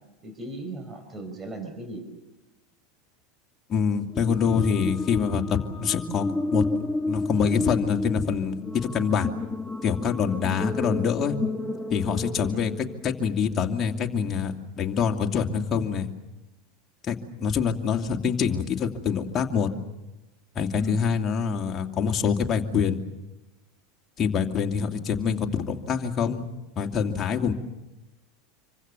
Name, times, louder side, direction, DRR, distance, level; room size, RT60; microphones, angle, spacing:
voice 1, 0.2-2.1 10.4-10.6 12.5-12.6 20.8-21.0, right 1 dB, 25° right, 7 dB, 5.0 m, -36 dB
voice 2, 3.7-6.3 6.5-6.6 7.1-9.3 9.8-11.4 11.9-12.7 13.0-16.1 17.0-19.7 20.5-23.0 24.2-26.4 26.8-27.5, left 6 dB, 35° left, 3 dB, 2.6 m, -25 dB
sound 1, 4.1-13.5, left 2 dB, 10° left, 1.3 m, -31 dB
27.5 x 24.5 x 7.0 m, 1.0 s
figure-of-eight pair, 80°, 0 cm